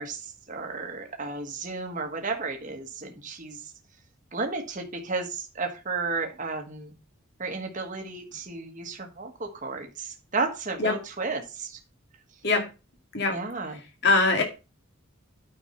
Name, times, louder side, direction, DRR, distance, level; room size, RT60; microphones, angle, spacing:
voice 1, 0.0-3.6 4.3-7.0 7.4-11.8 13.3-13.8, right 4 dB, 35° right, 3 dB, 1.4 m, -33 dB
voice 2, 14.0-14.4, left 3 dB, 50° left, 3 dB, 2.4 m, -21 dB
9.5 x 4.6 x 5.6 m, 0.30 s
head